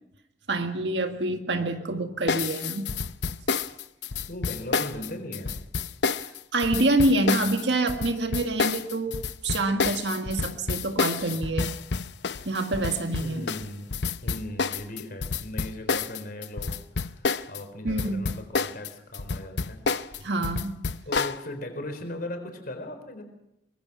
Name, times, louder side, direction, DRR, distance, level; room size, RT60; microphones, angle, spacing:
voice 1, 0.5-2.9 6.5-11.8 12.5-13.5 17.8-18.3 20.2-20.8, right 2 dB, 75° right, 6 dB, 1.7 m, -26 dB
sound 1, 2.3-17.6 17.9-21.4, left 4 dB, 70° left, 0.8 m, -29 dB
voice 2, 4.3-5.5 13.2-13.9 14.2-19.8 21.1-23.2, left 1 dB, 55° left, 7 dB, 4.0 m, -38 dB
24.0 x 21.5 x 6.1 m, 0.83 s
head